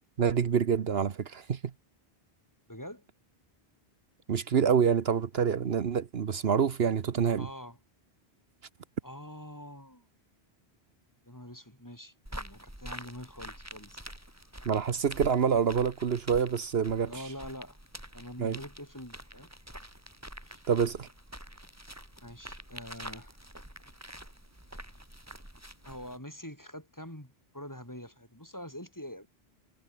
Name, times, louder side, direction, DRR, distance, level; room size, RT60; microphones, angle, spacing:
voice 1, 0.2-1.6 4.3-7.5 14.6-17.1 18.4-18.6 20.7-21.1, right 7 dB, 70° right, 1.2 m, -27 dB
voice 2, 2.7-3.1 7.4-7.8 9.0-10.1 11.3-14.0 17.1-17.8 18.1-19.5 20.4-20.6 22.2-23.4 25.8-29.3, equal, 15° left, 5.4 m, -45 dB
sound 1, 12.3-26.2, right 1 dB, 15° right, 4.3 m, -46 dB
omnidirectional pair, 1.1 m